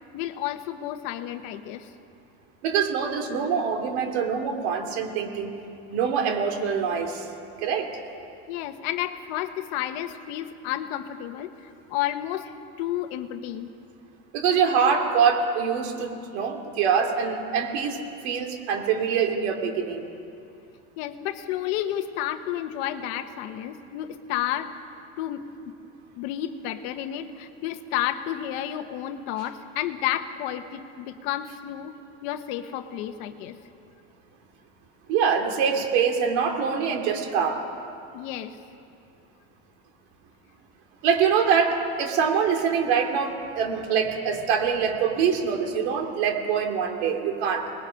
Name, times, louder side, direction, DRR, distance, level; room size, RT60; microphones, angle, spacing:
voice 1, 0.1-1.9 8.5-12.5 12.8-13.7 21.0-24.7 25.2-25.4 26.2-31.9 32.2-33.6 38.1-38.6, left 12 dB, 50° left, 8 dB, 1.1 m, -31 dB
voice 2, 2.6-5.5 5.9-7.3 7.6-7.9 14.3-20.0 35.1-37.6 41.0-47.7, right 6 dB, 65° right, 4 dB, 2.6 m, -24 dB
25.5 x 20.0 x 5.7 m, 2.6 s
cardioid pair, 180°, 36 cm